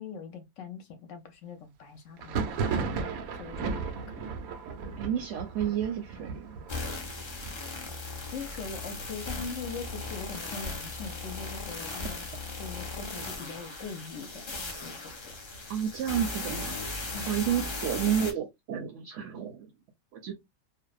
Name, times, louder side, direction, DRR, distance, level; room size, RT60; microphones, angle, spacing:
voice 1, 0.0-2.9 3.3-4.3 8.3-12.3 12.6-15.4 17.1-17.2, left 5 dB, 70° left, 0.9 m, -42 dB
Thunder, 2.2-11.7 11.9-12.6 12.9-13.9 14.3-16.0, right 5 dB, 90° right, 1.0 m, -37 dB
voice 2, 5.0-6.6 15.7-16.8 17.2-19.7 20.1-20.3, right 9 dB, 65° right, 0.9 m, -31 dB
sound 1, 6.7-18.3, left 3 dB, 40° left, 0.4 m, -37 dB
2.6 x 2.1 x 2.3 m
omnidirectional pair, 1.5 m